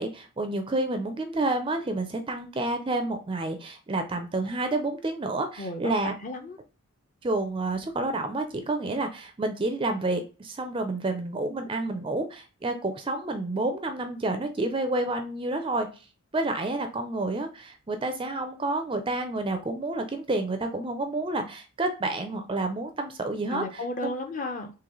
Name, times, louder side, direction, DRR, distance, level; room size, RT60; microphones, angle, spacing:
voice 1, 0.0-6.1 7.2-15.9 16.3-23.8, right 2 dB, 25° right, 7 dB, 0.4 m, -29 dB
voice 2, 5.6-6.6 23.5-24.7, left 2 dB, 35° left, 5 dB, 0.6 m, -34 dB
3.8 x 2.8 x 3.0 m, 0.32 s
head